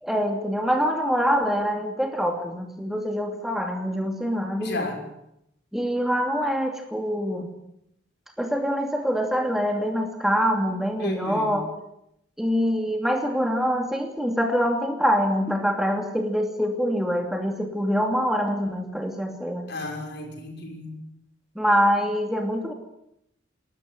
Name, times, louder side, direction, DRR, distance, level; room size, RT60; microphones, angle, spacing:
voice 1, 0.0-4.9 5.7-7.5 8.4-11.7 12.4-19.7 21.6-22.7, equal, ahead, 3 dB, 2.7 m, -25 dB
voice 2, 4.6-5.0 11.0-11.5 19.7-21.0, left 2 dB, 60° left, 3 dB, 6.3 m, -33 dB
29.5 x 13.5 x 9.4 m, 0.81 s
head